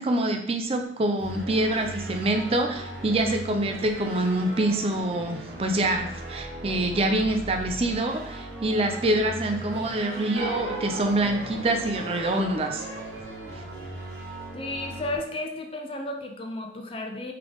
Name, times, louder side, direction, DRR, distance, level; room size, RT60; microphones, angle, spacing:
voice 1, 0.0-12.9 13.5-13.6, right 1 dB, 30° right, 4 dB, 0.5 m, -26 dB
sound 1, 1.2-15.2, right 2 dB, 60° right, 1.1 m, -39 dB
sound 2, 10.3-14.9, right 1 dB, 90° right, 1.4 m, -38 dB
voice 2, 14.5-17.3, left 2 dB, 30° left, 3 dB, 0.5 m, -33 dB
3.8 x 3.3 x 3.4 m, 0.71 s
head